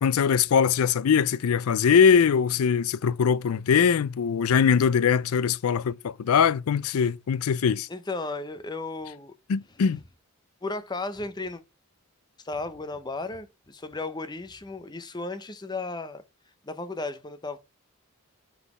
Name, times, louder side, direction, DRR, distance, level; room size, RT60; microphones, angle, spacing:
voice 1, 0.0-7.9 9.5-10.0, left 7 dB, 80° left, 0.4 m, -22 dB
voice 2, 7.9-9.3 10.6-11.6 12.4-16.2 16.6-17.6, left 3 dB, 20° left, 0.6 m, -34 dB
5.9 x 3.9 x 4.8 m
head